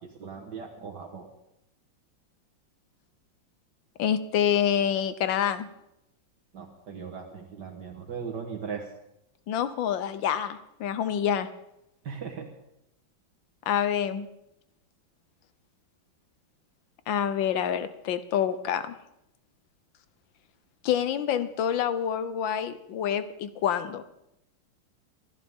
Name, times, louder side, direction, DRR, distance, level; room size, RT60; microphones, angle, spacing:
voice 1, 0.2-1.3 6.5-8.9 12.0-12.5, right 6 dB, 60° right, 1 dB, 1.9 m, -38 dB
voice 2, 4.0-5.7 9.5-11.5 13.7-14.3 17.1-18.9 20.8-24.0, left 9 dB, 75° left, 12 dB, 1.5 m, -27 dB
26.5 x 11.0 x 3.6 m, 0.86 s
omnidirectional pair, 2.1 m